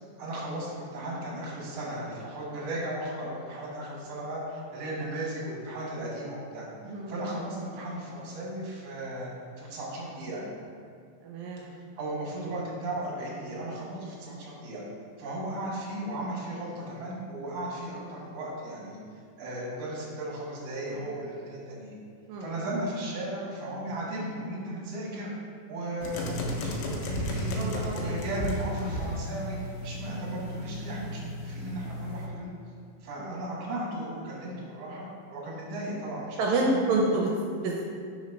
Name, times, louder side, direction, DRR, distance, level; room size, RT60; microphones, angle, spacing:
voice 1, 0.2-6.7 7.1-9.3 9.6-10.4 11.6-11.7 12.0-14.8 15.2-19.0 19.4-21.9 22.4-25.3 25.7-27.6 27.9-32.5 33.0-36.8, right 1 dB, 55° right, -5 dB, 2.0 m, -36 dB
voice 2, 11.2-11.6 22.3-22.5 27.6-28.1 30.1-30.2 33.2-33.3 36.4-37.8, right 2 dB, 80° right, -1 dB, 2.3 m, -28 dB
sound 1, 26.0-32.3, left 1 dB, 80° left, 2.3 m, -34 dB
5.0 x 4.1 x 5.3 m, 2.2 s
omnidirectional pair, 4.3 m